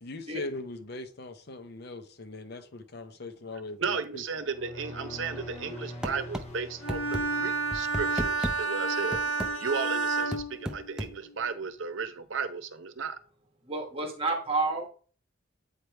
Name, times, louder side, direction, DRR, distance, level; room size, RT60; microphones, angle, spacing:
voice 1, 0.0-4.2, left 2 dB, 50° left, 0.7 m, -40 dB
voice 2, 3.8-13.2, right 5 dB, 70° right, 0.8 m, -35 dB
sound 1, 4.2-8.6, left 1 dB, 30° left, 1.2 m, -44 dB
sound 2, 6.0-6.5 6.9-7.2 7.7-8.6 9.1-9.5 10.3-11.1, equal, 5° right, 0.5 m, -33 dB
Bowed string instrument, 6.8-11.3, right 4 dB, 80° left, 1.6 m, -30 dB
voice 3, 13.7-14.9, right 3 dB, 30° right, 1.1 m, -30 dB
8.2 x 3.3 x 4.5 m
head